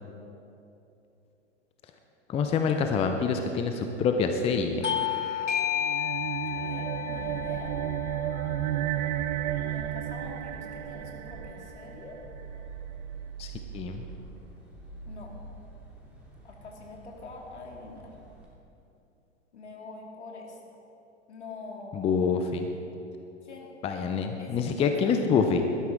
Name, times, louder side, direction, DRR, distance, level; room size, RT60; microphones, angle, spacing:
voice 1, 2.3-4.8 13.4-14.0 21.9-22.7 23.8-25.6, left 5 dB, 15° left, 6 dB, 0.7 m, -26 dB
Bell / Doorbell, 4.8-9.9, left 9 dB, 85° left, 0.8 m, -32 dB
sound 1, 5.8-12.4, right 13 dB, 40° right, 0.4 m, -33 dB
voice 2, 6.5-7.9 9.6-12.2 15.1-15.3 16.4-18.1 19.5-20.6 21.3-22.2 23.4-23.7 24.4-24.9, left 3 dB, 70° left, 0 dB, 2.5 m, -44 dB
sound 2, 7.2-18.5, right 4 dB, 5° right, 3.1 m, -46 dB
18.0 x 12.5 x 3.7 m, 2.8 s
figure-of-eight pair, 100°, 35 cm